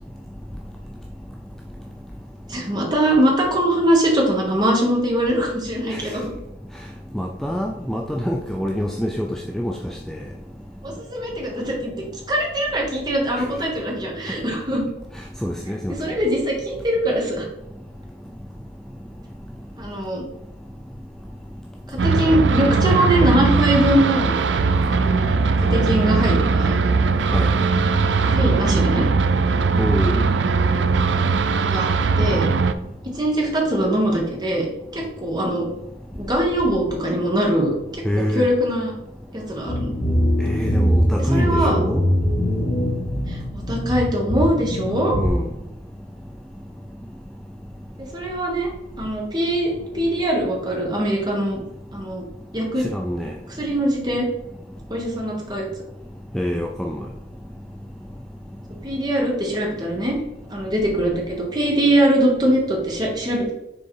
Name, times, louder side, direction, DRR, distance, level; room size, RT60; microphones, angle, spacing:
voice 1, 2.5-6.3 10.8-14.8 16.0-17.5 19.8-20.2 21.9-24.3 24.8-25.3 25.6-26.8 28.2-29.0 31.6-31.9 32.2-32.4 33.0-34.7 34.9-35.6 36.1-38.0 38.3-38.9 39.3-39.9 41.3-41.8 43.3-43.4 43.7-45.2 48.0-48.7 49.0-51.6 51.9-52.2 52.5-52.9 53.6-54.3 54.9-55.7 58.8-60.1 60.5-63.5, right 1 dB, 25° right, 1.7 m, -22 dB
voice 2, 7.1-10.2 15.4-15.9 27.3-27.5 29.8-30.2 38.0-38.5 40.4-42.1 45.2-45.5 52.8-53.3 56.3-57.1, equal, ahead, 0.4 m, -25 dB
sound 1, 22.0-32.7, right 4 dB, 90° right, 0.5 m, -19 dB
sound 2, 39.7-45.3, equal, 50° left, 1.8 m, -22 dB
6.6 x 3.8 x 4.6 m
head